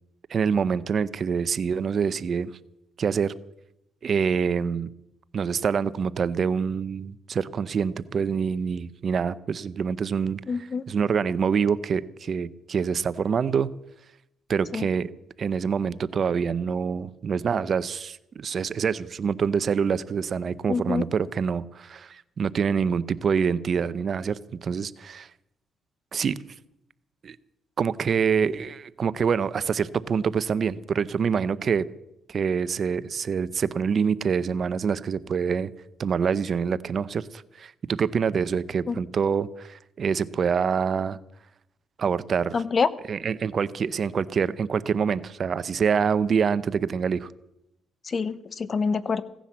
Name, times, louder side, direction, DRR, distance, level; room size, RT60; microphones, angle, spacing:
voice 1, 0.3-2.5 3.0-3.3 4.0-4.9 5.3-10.4 10.9-13.7 14.5-15.1 15.4-25.3 26.1-26.4 27.2-27.4 27.8-31.9 32.3-35.7 36.0-41.2 42.0-42.5 43.1-47.3, right 6 dB, 50° right, 17 dB, 0.6 m, -26 dB
voice 2, 10.5-10.8 14.7-14.9 20.7-21.1 38.9-39.0 42.5-42.9 48.0-49.2, left 5 dB, 40° left, 17 dB, 0.8 m, -26 dB
16.5 x 10.0 x 7.4 m, 0.87 s
cardioid pair, 90°, 0 cm